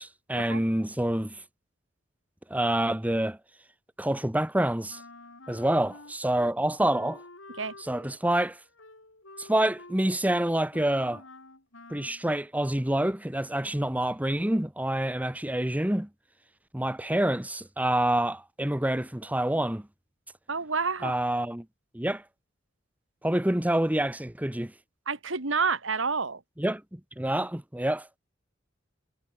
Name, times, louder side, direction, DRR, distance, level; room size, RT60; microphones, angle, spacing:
voice 1, 0.0-1.4 2.5-3.4 4.0-5.0 5.5-7.2 7.8-8.6 9.4-11.2 11.9-16.1 16.7-19.9 21.0-21.6 21.9-22.2 23.2-24.7 26.6-28.1, right 1 dB, 10° right, 1.0 m, -27 dB
Wind instrument woodwind instrument, 4.9-6.5 6.9-12.2, left 2 dB, 85° left, 7.7 m, -49 dB
voice 2, 20.5-21.2 25.1-26.4, right 4 dB, 85° right, 2.1 m, -29 dB
head